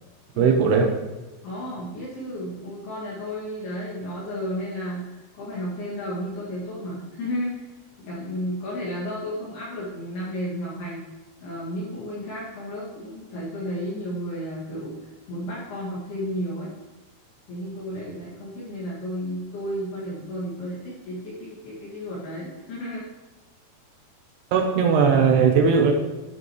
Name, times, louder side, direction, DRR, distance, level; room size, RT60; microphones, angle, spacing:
voice 1, 0.4-0.9 24.5-25.9, right 6 dB, 80° right, 3 dB, 2.5 m, -18 dB
voice 2, 1.4-7.6 8.0-11.0 11.4-15.0 15.3-16.7 17.5-23.1, equal, 60° left, -8 dB, 3.9 m, -32 dB
11.0 x 10.0 x 3.2 m, 1.1 s
omnidirectional pair, 5.6 m